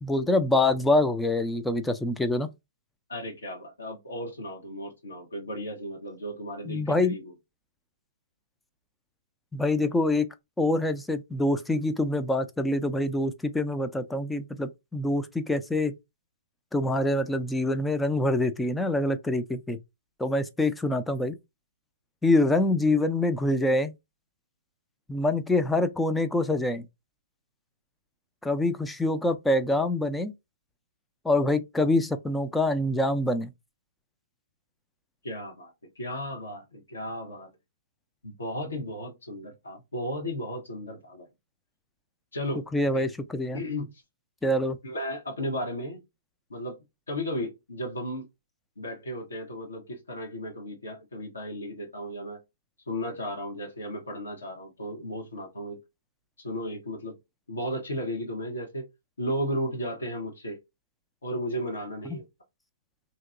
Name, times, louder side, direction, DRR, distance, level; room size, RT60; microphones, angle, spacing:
voice 1, 0.0-2.5 6.7-7.1 9.5-10.3 10.6-15.9 16.7-19.8 20.2-21.3 22.2-23.9 25.1-26.9 28.4-30.3 31.2-33.5 42.7-43.6 44.4-44.8 62.1-62.2, left 2 dB, 5° left, 0.4 m, -25 dB
voice 2, 3.1-7.3 35.2-37.5 38.2-41.3 42.3-42.6 42.9-43.1 43.5-43.9 44.8-46.0 46.5-46.8 47.1-48.2 48.8-52.4 52.9-55.8 56.4-57.1 57.5-58.8 59.2-60.6 61.2-62.3, equal, 80° left, 1.2 m, -34 dB
2.8 x 2.8 x 2.5 m
figure-of-eight pair, 120°, 0 cm